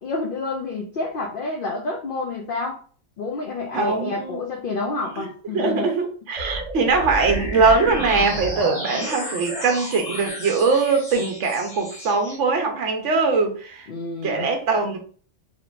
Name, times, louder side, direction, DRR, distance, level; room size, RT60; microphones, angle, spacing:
voice 1, 0.0-2.8 3.2-5.9 13.9-14.5, left 3 dB, 55° left, 0.7 m, -28 dB
voice 2, 3.7-4.4 5.5-13.9 14.2-15.0, right 4 dB, 70° right, 1.2 m, -21 dB
sound 1, 6.4-12.4, equal, 30° left, 1.2 m, -31 dB
4.1 x 2.8 x 2.5 m
omnidirectional pair, 1.3 m